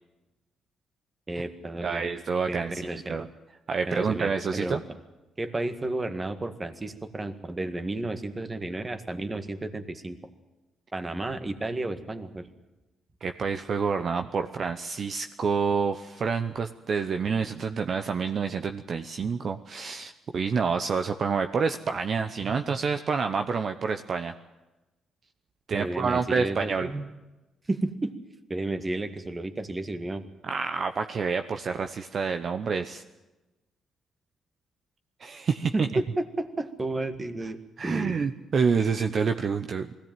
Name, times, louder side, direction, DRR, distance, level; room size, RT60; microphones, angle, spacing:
voice 1, 1.3-2.1 2.5-3.2 3.9-4.8 5.4-10.2 10.9-12.5 25.8-27.1 27.7-28.1 28.5-30.2 35.6-37.6 37.8-38.2, right 2 dB, 20° right, 9 dB, 1.8 m, -32 dB
voice 2, 1.8-3.3 3.7-4.8 13.2-24.3 25.7-26.9 30.4-33.0 35.2-35.9 37.8-39.9, right 5 dB, 50° right, 7 dB, 0.9 m, -28 dB
20.5 x 16.5 x 9.2 m, 1.1 s
cardioid pair, 90°, 0 cm